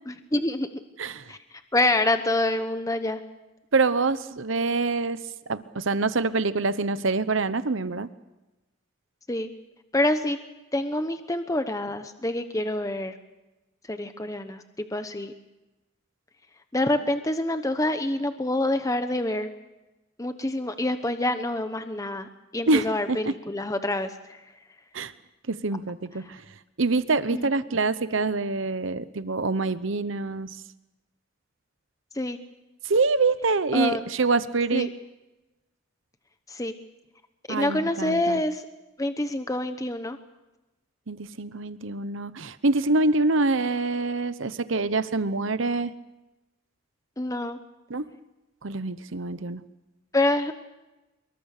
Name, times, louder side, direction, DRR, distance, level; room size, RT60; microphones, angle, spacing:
voice 1, 0.3-0.7 1.3-3.2 9.3-9.5 9.9-10.4 10.7-13.1 13.9-15.3 16.7-19.5 20.2-24.4 27.3-27.5 32.1-32.4 33.7-34.0 34.7-34.9 36.5-36.7 37.5-38.6 39.0-40.2 47.2-47.6 50.1-50.6, left 1 dB, 15° left, 8 dB, 1.0 m, -27 dB
voice 2, 3.7-5.2 5.5-8.1 22.7-23.3 24.9-25.1 25.5-26.4 26.8-30.6 32.8-34.9 37.5-38.4 41.1-45.9 47.9-48.0 48.6-49.6, right 3 dB, 65° right, 13 dB, 0.9 m, -25 dB
25.0 x 22.5 x 6.7 m, 1.0 s
head